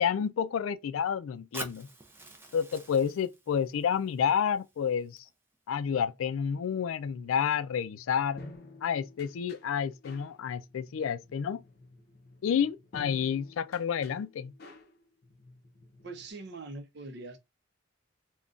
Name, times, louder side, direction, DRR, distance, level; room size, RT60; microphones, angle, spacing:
voice 1, 0.0-1.9 2.5-5.2 5.7-8.4 8.8-11.6 12.4-14.5, left 7 dB, 90° left, 0.3 m, -30 dB
Fire, 1.5-5.6, right 2 dB, 10° right, 0.4 m, -47 dB
sound 1, 7.0-16.3, left 2 dB, 50° left, 0.6 m, -52 dB
voice 2, 16.0-17.4, right 3 dB, 55° right, 0.6 m, -42 dB
3.7 x 2.2 x 2.4 m
head